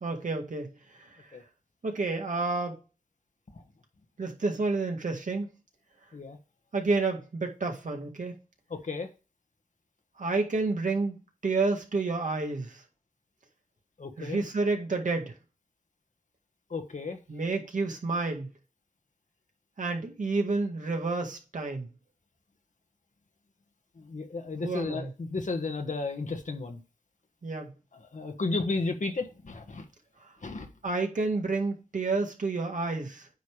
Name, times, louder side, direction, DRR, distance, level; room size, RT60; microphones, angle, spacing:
voice 1, 0.0-1.4 1.8-2.8 4.2-5.5 6.7-8.3 10.2-11.2 11.4-12.8 14.2-15.3 17.3-18.5 19.8-21.9 24.6-25.1 27.4-27.7 30.2-30.3 30.8-33.3, right 3 dB, 65° right, 1.8 m, -30 dB
voice 2, 8.7-9.1 14.0-14.4 16.7-17.2 24.0-26.8 28.1-29.8 30.4-30.7, left 3 dB, 60° left, 1.4 m, -33 dB
9.2 x 3.5 x 4.8 m
wide cardioid pair, 65°, 14 cm